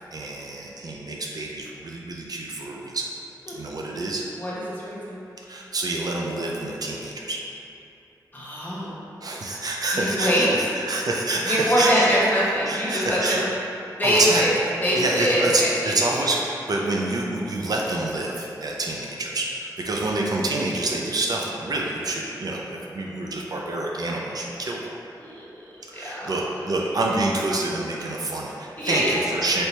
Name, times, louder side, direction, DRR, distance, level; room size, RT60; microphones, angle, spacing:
voice 1, 0.1-3.1 3.6-4.2 5.5-7.4 9.2-12.1 12.7-13.4 14.0-14.5 15.0-24.8 25.9-29.6, right 2 dB, 55° right, -2 dB, 0.4 m, -27 dB
voice 2, 4.4-5.2 8.3-8.9 9.9-10.7 11.4-13.5 14.0-14.5 14.8-16.3 25.2-25.5 25.9-26.3 28.8-29.5, equal, 25° left, -8 dB, 1.0 m, -23 dB
3.3 x 2.8 x 3.0 m, 2.8 s
cardioid pair, 50°, 8 cm